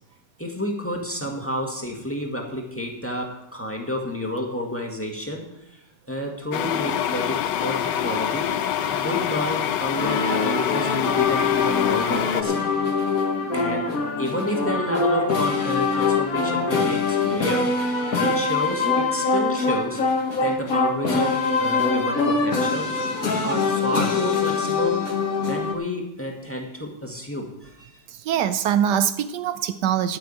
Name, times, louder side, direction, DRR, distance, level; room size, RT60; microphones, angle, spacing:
voice 1, 0.4-5.8 6.1-8.5 8.9-12.7 13.5-17.7 18.2-20.0 20.4-23.1 23.4-25.0 25.5-27.9, equal, 10° left, 0 dB, 1.8 m, -30 dB
sound 1, 6.5-12.4, left 10 dB, 90° left, 1.3 m, -26 dB
sound 2, 10.0-25.7, left 4 dB, 55° left, 2.0 m, -23 dB
voice 2, 28.1-30.2, right 9 dB, 75° right, 12 dB, 1.2 m, -23 dB
13.0 x 6.1 x 8.6 m, 0.91 s
omnidirectional pair, 1.9 m